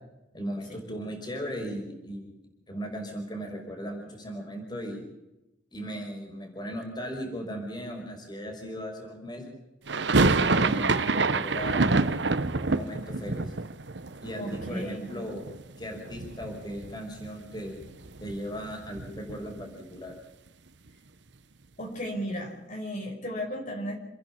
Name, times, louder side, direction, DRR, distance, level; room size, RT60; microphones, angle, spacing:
voice 1, 0.3-2.3 2.7-5.1 5.7-9.5 10.2-12.0 12.7-13.5 14.2-15.4 15.8-17.8 18.2-20.1, equal, 25° left, 2 dB, 5.6 m, -37 dB
sound 1, 9.9-15.8 16.1-16.9 17.2-17.3 17.5-19.7, right 3 dB, 75° right, 1.1 m, -27 dB
voice 2, 14.4-15.1 21.8-24.0, equal, 45° left, 0 dB, 5.2 m, -35 dB
29.0 x 10.5 x 8.7 m, 0.96 s
head